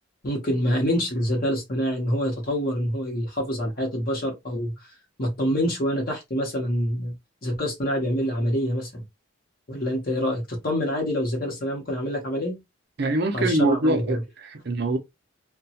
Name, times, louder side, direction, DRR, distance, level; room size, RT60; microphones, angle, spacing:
voice 1, 0.2-4.7 5.2-7.1 7.4-9.0 9.7-12.6 13.3-14.2, equal, 45° left, 0.8 m, -26 dB
voice 2, 13.0-15.0, right 2 dB, 50° right, 0.6 m, -24 dB
2.9 x 2.2 x 2.8 m
head